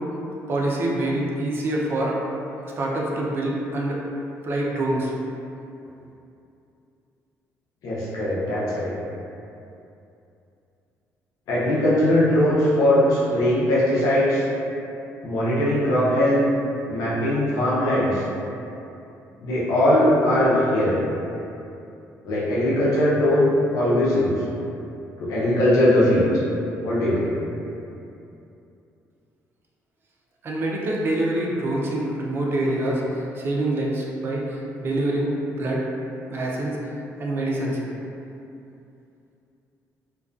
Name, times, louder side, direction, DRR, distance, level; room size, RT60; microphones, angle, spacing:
voice 1, 0.5-2.2 2.6-4.0 4.4-5.1 30.4-35.3 35.6-35.8 36.3-36.9 37.2-37.8, right 1 dB, 40° right, -3 dB, 0.4 m, -25 dB
voice 2, 7.8-8.9 11.5-14.4 15.2-16.4 16.9-18.2 19.4-21.0 22.2-24.4 25.2-26.3 26.8-27.4, left 1 dB, 75° left, -8 dB, 0.6 m, -20 dB
2.3 x 2.2 x 2.4 m, 2.7 s
cardioid pair, 140°, 6 cm